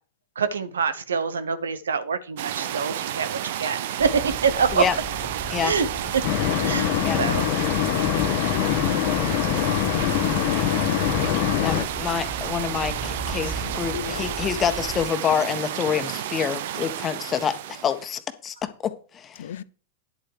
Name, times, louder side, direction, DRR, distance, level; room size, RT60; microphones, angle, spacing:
voice 1, 0.4-4.8 5.6-5.9 6.1-6.3 6.6-7.5, right 5 dB, 80° right, 1.0 m, -25 dB
sound 1, 2.4-18.1, right 11 dB, 65° right, 0.8 m, -31 dB
sound 2, 4.0-15.1, equal, 10° left, 1.2 m, -37 dB
sound 3, 6.2-11.8, left 13 dB, 55° left, 1.0 m, -24 dB
voice 2, 9.7-10.3 13.4-14.3 19.4-19.6, left 10 dB, 70° left, 0.6 m, -36 dB
voice 3, 11.6-19.4, left 8 dB, 25° left, 1.4 m, -27 dB
10.5 x 7.7 x 4.9 m
hypercardioid pair, 100°, 0 cm